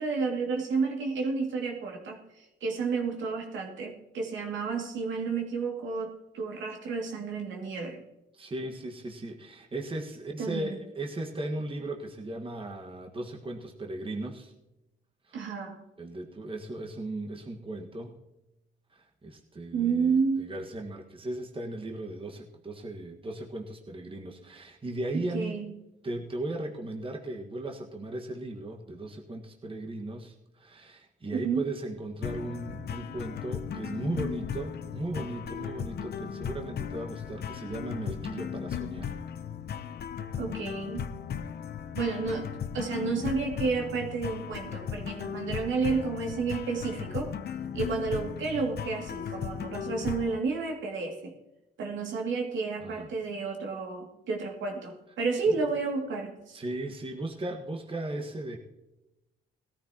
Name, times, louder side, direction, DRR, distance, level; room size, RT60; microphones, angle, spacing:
voice 1, 0.0-8.0 10.4-10.8 15.3-15.8 19.7-20.4 25.1-25.7 31.3-31.7 40.4-41.1 42.0-42.5 42.7-47.3 47.7-51.3 51.8-56.6, right 4 dB, 75° right, 1 dB, 2.5 m, -31 dB
voice 2, 8.3-14.5 15.3-15.5 16.0-18.2 18.9-25.5 26.0-39.1 52.8-53.1 55.5-55.6 56.5-58.6, right 2 dB, 25° right, 1 dB, 1.6 m, -37 dB
sound 1, 32.2-50.4, left 8 dB, 55° left, 0.7 m, -37 dB
18.5 x 13.5 x 3.0 m, 0.97 s
cardioid pair, 90°, 20 cm